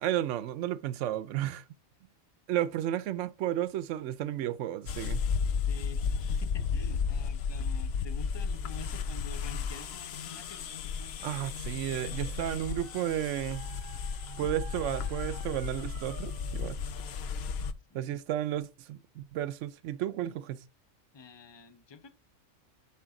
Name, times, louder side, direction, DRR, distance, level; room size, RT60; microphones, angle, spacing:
voice 1, 0.0-1.6 2.5-5.2 11.2-13.7 14.4-16.8 17.9-20.6, right 12 dB, 75° right, 0.9 m, -33 dB
sound 1, 4.9-17.7, left 6 dB, 60° left, 0.8 m, -34 dB
voice 2, 5.7-11.6 17.9-18.1 21.1-22.1, left 5 dB, 30° left, 0.6 m, -48 dB
Dog, 11.7-16.8, right 13 dB, 90° right, 1.1 m, -52 dB
10.5 x 4.0 x 3.7 m
omnidirectional pair, 1.3 m